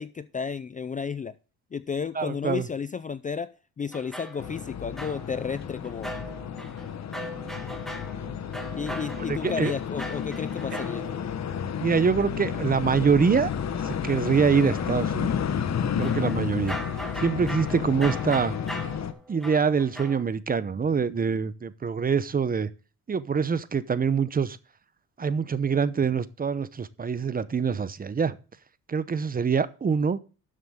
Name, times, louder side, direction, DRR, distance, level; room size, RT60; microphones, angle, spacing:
voice 1, 0.0-1.4 1.7-6.1 8.8-11.1, left 6 dB, 20° left, 0.4 m, -32 dB
voice 2, 2.2-2.7 9.3-9.7 10.7-10.8 11.8-15.3 16.0-16.8 17.2-18.5 19.3-22.7 23.1-24.6 25.2-28.4 28.9-30.2, right 6 dB, 25° right, 0.7 m, -25 dB
sound 1, 3.8-11.7 12.0-12.1 14.0-14.3 14.7-14.9 16.0-20.2, equal, ahead, 1.9 m, -40 dB
sound 2, 4.4-19.1, left 8 dB, 45° left, 1.2 m, -31 dB
12.0 x 7.5 x 3.6 m
cardioid pair, 115°, 36 cm